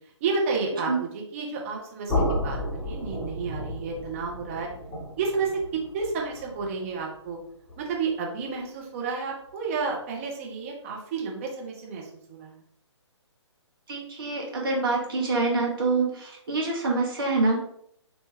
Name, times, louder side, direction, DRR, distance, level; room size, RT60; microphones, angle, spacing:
voice 1, 0.2-4.7 5.2-5.6 5.9-7.4 7.8-12.6, right 4 dB, 30° right, -1 dB, 0.8 m, -31 dB
sound 1, 2.1-8.0, left 1 dB, 5° left, 1.4 m, -32 dB
voice 2, 13.9-17.6, right 3 dB, 50° right, -2 dB, 1.2 m, -26 dB
3.1 x 2.8 x 3.2 m, 0.69 s
figure-of-eight pair, 135°, 16 cm